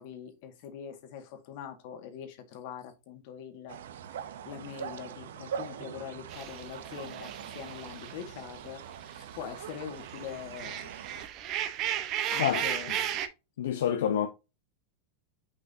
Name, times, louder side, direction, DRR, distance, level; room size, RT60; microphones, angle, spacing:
voice 1, 0.0-3.8 4.5-8.8 9.3-10.9 12.3-13.2, left 8 dB, 60° left, 1.8 m, -43 dB
sound 1, 3.7-11.3, right 8 dB, 80° right, 0.7 m, -42 dB
sound 2, 6.3-9.2 9.6-13.3, right 10 dB, 45° right, 1.0 m, -35 dB
voice 2, 13.6-14.3, left 9 dB, 80° left, 0.7 m, -27 dB
6.2 x 5.6 x 2.7 m
hypercardioid pair, 115°, 0 cm